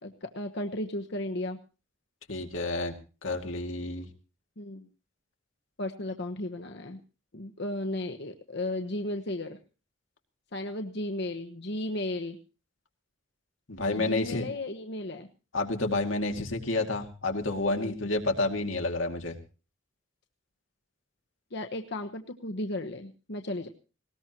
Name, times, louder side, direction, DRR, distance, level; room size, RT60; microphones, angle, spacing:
voice 1, 0.0-1.6 4.6-4.9 5.8-7.0 7.3-9.6 10.5-12.4 13.9-15.3 17.7-18.1 21.5-23.7, left 1 dB, 60° left, 4 dB, 1.2 m, -35 dB
voice 2, 2.3-2.9 3.2-4.1 13.7-14.5 15.5-19.4, left 2 dB, 90° left, 4 dB, 2.4 m, -29 dB
20.0 x 18.5 x 3.0 m, 0.34 s
head